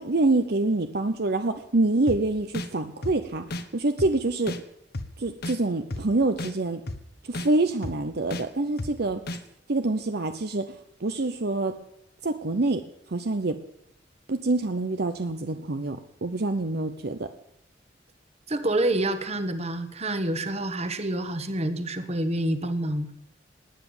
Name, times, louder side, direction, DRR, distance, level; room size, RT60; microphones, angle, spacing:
voice 1, 0.0-3.4 3.7-4.5 5.2-6.8 7.2-9.2 9.7-10.7 11.0-11.8 12.2-12.8 13.1-13.6 14.3-17.3, right 2 dB, 60° right, 9 dB, 0.8 m, -26 dB
sound 1, 2.1-2.2 2.5-2.7 3.0-3.2 3.5-3.6 4.0-4.1 4.5-4.6 4.9-5.1 5.4-5.6 5.9-6.0 6.4-6.5 6.9-7.0 7.3-7.5 7.8-8.0 8.3-8.4 8.8-8.9 9.3-9.4, left 1 dB, 55° left, 1.2 m, -32 dB
voice 2, 18.5-23.1, right 1 dB, 35° right, 10 dB, 1.4 m, -27 dB
19.0 x 9.4 x 7.2 m, 0.76 s
head